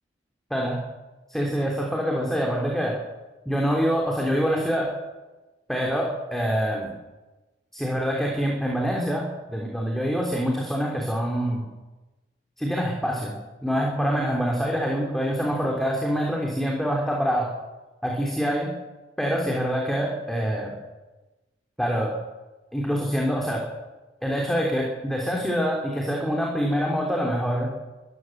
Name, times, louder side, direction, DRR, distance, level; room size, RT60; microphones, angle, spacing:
voice 1, 1.3-3.0 3.5-4.9 5.7-6.9 7.7-11.7 12.6-13.3 13.6-17.5 18.0-18.7 19.2-20.7 21.8-22.1 22.7-23.6 24.2-27.7, equal, ahead, -1 dB, 3.4 m, -25 dB
23.5 x 14.0 x 7.9 m, 1.1 s
head